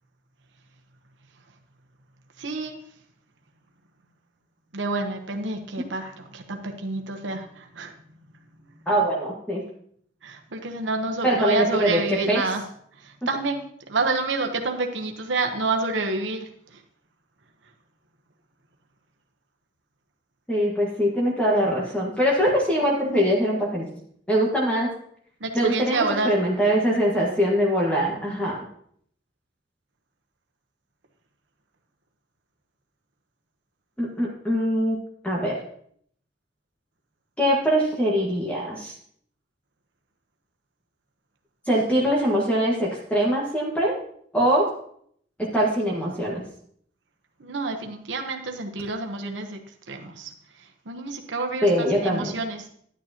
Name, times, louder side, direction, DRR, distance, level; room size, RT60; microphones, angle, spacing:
voice 1, 2.4-2.8 4.7-7.9 10.2-12.6 13.0-13.6 13.9-16.4 25.4-26.4 47.4-49.6 49.9-50.3 50.9-52.7, right 3 dB, 85° right, 3 dB, 1.0 m, -28 dB
voice 2, 8.9-9.6 11.2-12.4 20.5-23.9 24.3-24.9 25.5-28.6 34.0-35.0 35.2-35.6 37.4-38.9 41.7-43.9 44.3-44.6 45.5-46.4 51.6-52.3, equal, 10° left, -4 dB, 1.6 m, -22 dB
11.5 x 9.4 x 2.9 m, 0.64 s
head